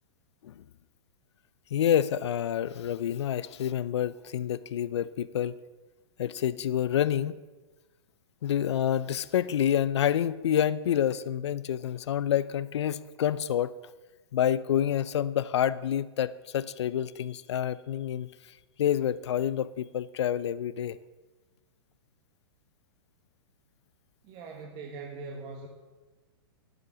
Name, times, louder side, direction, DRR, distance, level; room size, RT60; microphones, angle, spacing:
voice 1, 1.7-5.6 6.2-7.3 8.4-13.7 14.3-18.3 18.8-21.0, left 10 dB, 80° left, 17 dB, 0.6 m, -28 dB
voice 2, 24.2-25.7, right 4 dB, 35° right, 0 dB, 1.5 m, -41 dB
11.0 x 7.9 x 7.4 m, 1.2 s
hypercardioid pair, 140°, 14 cm